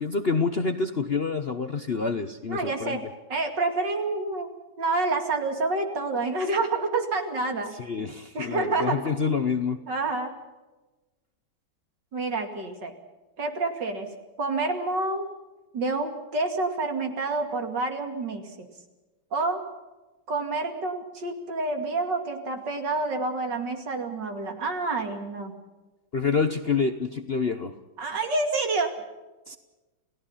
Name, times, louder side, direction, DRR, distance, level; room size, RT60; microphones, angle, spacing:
voice 1, 0.0-3.0 7.8-9.8 26.1-27.7 29.5-29.6, left 5 dB, 40° left, 8 dB, 0.9 m, -27 dB
voice 2, 2.5-3.0 3.3-4.5 4.8-7.7 8.3-9.0 9.9-10.3 12.1-12.9 13.4-14.1 14.4-15.3 15.7-18.7 19.3-19.6 20.3-25.5 28.0-28.9, right 3 dB, 65° right, 5 dB, 3.1 m, -28 dB
29.5 x 17.5 x 5.7 m, 1.1 s
omnidirectional pair, 2.1 m